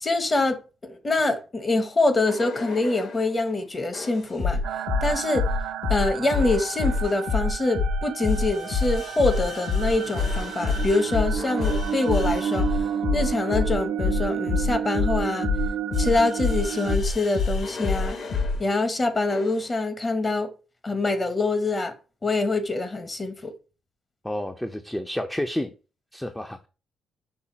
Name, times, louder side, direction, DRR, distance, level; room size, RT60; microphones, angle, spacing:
voice 1, 0.0-4.6 5.0-5.5 5.9-15.5 16.0-18.2 18.6-20.5 20.8-21.9 22.2-23.5, left 2 dB, 30° left, 0.8 m, -25 dB
sound 1, 2.3-3.3 3.9-18.6 19.3-19.7, left 4 dB, 55° left, 1.1 m, -27 dB
sound 2, 4.6-17.0, right 9 dB, 80° right, 0.4 m, -31 dB
voice 2, 24.2-25.7 26.1-26.6, left 1 dB, 5° left, 0.4 m, -30 dB
5.5 x 2.1 x 4.1 m
cardioid pair, 90°, 0 cm